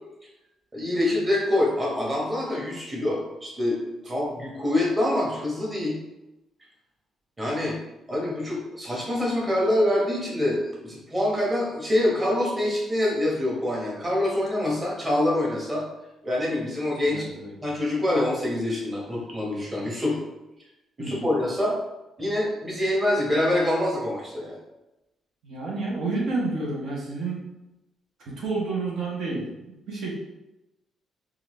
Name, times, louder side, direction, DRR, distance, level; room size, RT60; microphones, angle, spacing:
voice 1, 0.7-6.0 7.4-7.8 8.1-15.8 16.2-17.3 17.6-20.2 21.0-21.8 22.2-24.6, left 1 dB, 25° right, -3 dB, 1.3 m, -25 dB
voice 2, 17.1-17.5 21.0-21.3 25.4-27.4 28.2-30.1, right 3 dB, 70° right, -4 dB, 0.9 m, -30 dB
3.8 x 2.4 x 3.2 m, 0.96 s
cardioid pair, 90°, 0 cm